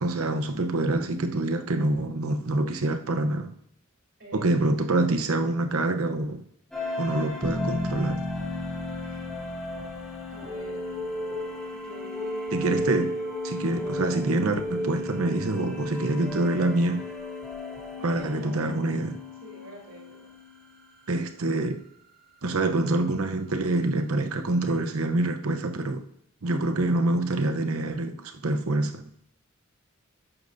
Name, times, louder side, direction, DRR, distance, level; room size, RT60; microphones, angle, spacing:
voice 1, 0.0-3.5 4.3-6.4 7.0-8.2 12.5-13.1 13.4-17.1 18.0-19.2 21.1-21.8 22.4-26.0 26.4-29.0, right 2 dB, 80° right, 0.8 m, -26 dB
voice 2, 4.2-4.6 9.0-9.3 10.3-11.1 11.7-12.8 18.0-18.6 19.4-20.3, equal, 55° right, 3.6 m, -46 dB
sound 1, 6.7-20.8, left 1 dB, ahead, 2.2 m, -35 dB
sound 2, 7.4-11.5, left 1 dB, 30° right, 1.2 m, -34 dB
11.5 x 8.7 x 2.7 m
head